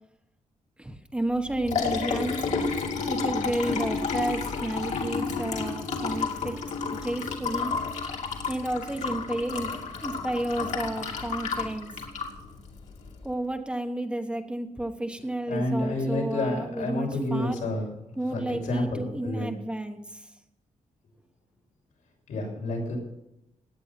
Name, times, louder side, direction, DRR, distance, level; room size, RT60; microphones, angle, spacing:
voice 1, 0.8-2.4 3.0-6.6 6.9-7.7 8.5-9.8 10.0-11.9 13.2-17.6 18.2-20.3, right 1 dB, 10° right, 5 dB, 1.1 m, -31 dB
Liquid, 1.3-13.3, left 4 dB, 60° left, 2.5 m, -31 dB
voice 2, 15.5-19.5 22.3-23.0, left 1 dB, 90° left, -1 dB, 6.7 m, -30 dB
17.0 x 9.8 x 5.9 m, 0.84 s
wide cardioid pair, 175°, 13 cm